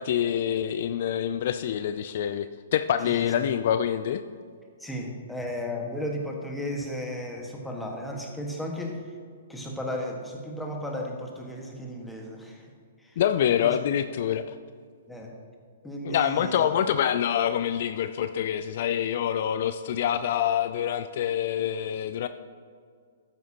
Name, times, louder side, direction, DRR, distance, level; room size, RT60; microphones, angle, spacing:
voice 1, 0.0-4.2 13.2-14.5 16.0-22.3, left 9 dB, 55° left, 11 dB, 0.4 m, -26 dB
voice 2, 3.0-3.5 4.8-9.0 9.5-12.7 13.0-13.7 15.1-15.4 15.8-16.7, left 1 dB, 5° left, 0 dB, 1.6 m, -35 dB
12.5 x 9.2 x 2.9 m, 2.1 s
hypercardioid pair, 125°, 0 cm